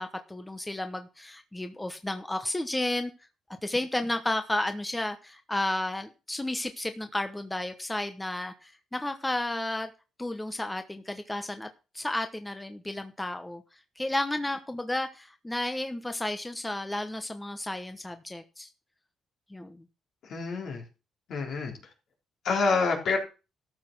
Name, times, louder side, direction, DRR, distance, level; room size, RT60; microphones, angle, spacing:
voice 1, 0.0-3.1 3.6-9.9 10.2-13.6 14.0-18.7 19.5-19.8, left 1 dB, 10° left, 8 dB, 1.1 m, -32 dB
voice 2, 20.3-20.8 21.3-21.7 22.4-23.2, left 4 dB, 65° left, 1 dB, 3.9 m, -27 dB
13.5 x 6.0 x 6.1 m, 0.32 s
cardioid pair, 90°, 0 cm